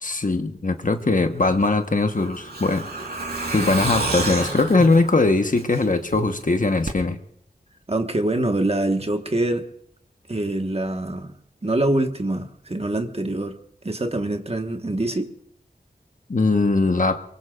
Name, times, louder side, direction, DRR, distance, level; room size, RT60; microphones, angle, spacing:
voice 1, 0.0-2.9 3.5-7.2 16.3-17.2, left 3 dB, 50° left, 1.3 m, -20 dB
Truck, 1.5-6.2 6.5-6.6 6.9-7.0, right 2 dB, 70° right, 3.6 m, -29 dB
voice 2, 7.9-9.7 10.3-11.3 11.6-13.6 13.8-15.3, right 1 dB, 35° right, 1.5 m, -24 dB
23.5 x 23.5 x 2.5 m
wide cardioid pair, 45°, 17 cm